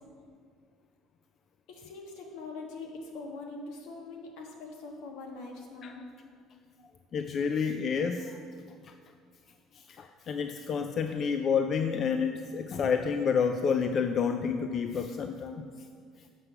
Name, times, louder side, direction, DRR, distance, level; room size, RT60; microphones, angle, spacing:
voice 1, 1.7-6.1, left 3 dB, 70° left, 1 dB, 1.4 m, -43 dB
voice 2, 7.1-8.4 8.9-9.0 9.8-15.7, left 6 dB, 35° left, 7 dB, 0.3 m, -29 dB
7.6 x 5.8 x 5.6 m, 2.1 s
cardioid pair, 155°, 0 cm